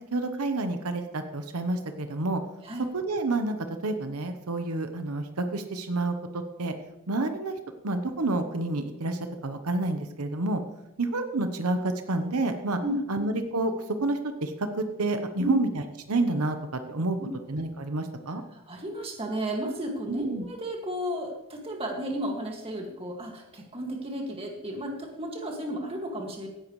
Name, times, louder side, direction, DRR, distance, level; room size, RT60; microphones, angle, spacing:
voice 1, 0.0-2.4 2.9-3.6 3.8-6.7 7.1-7.6 7.8-10.6 11.0-12.8 13.1-13.7 14.0-15.7 16.1-16.6 16.9-17.2 17.5-18.4 20.1-20.4, right 2 dB, 80° right, 7 dB, 1.0 m, -29 dB
voice 2, 18.3-26.5, equal, 25° right, 1 dB, 2.0 m, -33 dB
16.0 x 10.5 x 3.2 m, 0.93 s
head